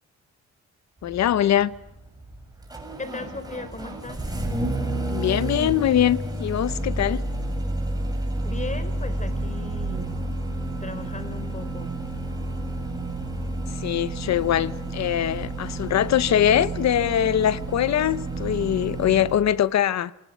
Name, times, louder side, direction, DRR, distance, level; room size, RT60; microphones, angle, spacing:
voice 1, 1.0-1.7 5.1-7.2 13.8-20.1, left 10 dB, 65° left, 1.0 m, -22 dB
Engine starting, 1.0-19.4, right 2 dB, 15° right, 6.7 m, -30 dB
voice 2, 3.0-4.4 8.4-10.3 10.8-12.0, left 3 dB, 25° left, 4.0 m, -37 dB
29.5 x 18.5 x 9.5 m
cardioid pair, 90°, 30 cm